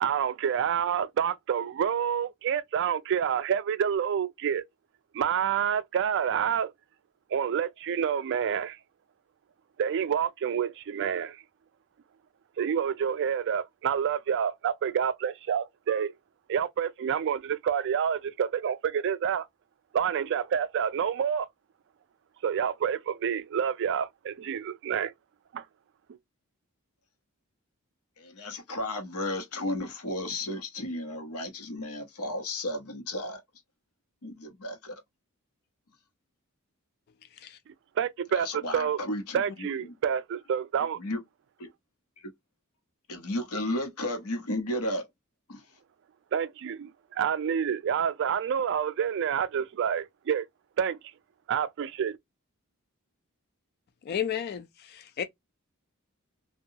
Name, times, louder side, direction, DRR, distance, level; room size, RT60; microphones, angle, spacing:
voice 1, 0.0-4.6 5.1-6.7 7.3-8.8 9.8-11.4 12.6-16.1 16.5-19.5 19.9-21.5 22.4-25.1 25.5-25.6 38.0-38.5 38.7-39.0 39.3-41.0 46.3-50.5 50.8-51.0 51.5-52.2, right 8 dB, 55° right, 0.3 m, -28 dB
voice 2, 28.2-33.4 34.2-34.9 38.3-40.0 41.0-41.2 42.2-42.3 43.1-45.0 45.5-45.6, left 1 dB, 80° left, 0.9 m, -33 dB
voice 3, 54.0-55.2, left 9 dB, 45° left, 0.3 m, -33 dB
2.6 x 2.3 x 2.7 m
head